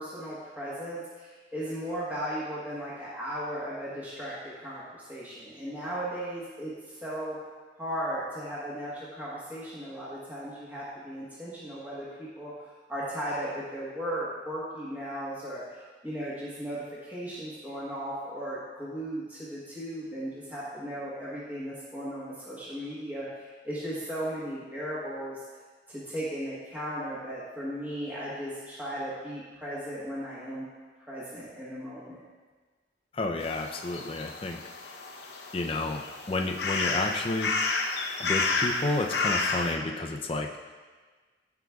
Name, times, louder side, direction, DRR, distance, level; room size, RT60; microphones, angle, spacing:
voice 1, 0.0-7.4 7.8-25.4 25.9-30.6 31.0-32.2, equal, 10° right, -9 dB, 1.2 m, -36 dB
voice 2, 33.1-34.6 35.5-37.5 38.2-40.5, left 2 dB, 30° left, 2 dB, 0.5 m, -31 dB
sound 1, 33.4-39.7, left 3 dB, 70° left, 0.7 m, -31 dB
13.0 x 4.8 x 2.3 m, 1.4 s
head